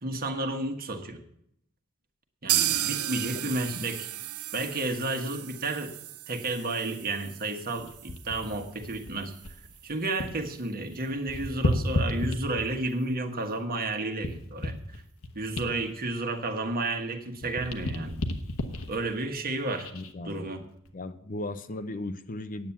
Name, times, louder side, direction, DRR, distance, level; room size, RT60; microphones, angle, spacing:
voice 1, 0.0-1.2 2.4-4.1 4.5-5.9 6.3-9.3 9.8-14.7 15.3-18.2 18.9-19.9 20.2-20.6, right 2 dB, 45° right, 5 dB, 1.5 m, -31 dB
sound 1, 2.5-10.2 10.5-10.6 10.9-11.0 11.5-11.6, right 13 dB, 90° right, 0.7 m, -34 dB
sound 2, 7.8-10.5 10.8-12.9 13.5-17.0 17.3-20.1 20.7-20.9, left 1 dB, 70° left, 1.3 m, -33 dB
voice 2, 19.9-20.4 20.9-22.7, left 2 dB, 40° left, 11 dB, 0.6 m, -36 dB
9.4 x 8.8 x 7.1 m, 0.72 s
head